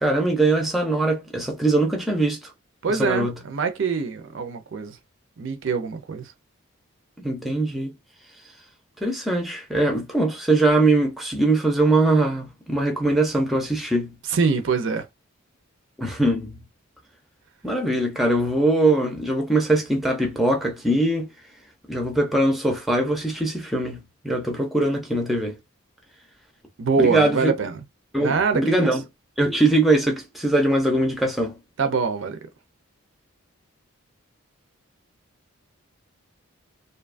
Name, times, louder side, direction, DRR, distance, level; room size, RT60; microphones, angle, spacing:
voice 1, 0.0-2.4 3.0-3.3 7.2-7.9 9.0-14.1 16.0-16.6 17.6-21.3 21.9-24.0 24.2-25.6 27.0-27.5 28.1-29.0 29.4-31.5, right 2 dB, ahead, 0.5 m, -21 dB
voice 2, 2.8-5.0 5.4-6.3 14.3-15.1 26.8-27.8 28.2-29.0 31.8-32.5, right 5 dB, 60° right, 0.4 m, -24 dB
2.7 x 2.3 x 2.4 m
head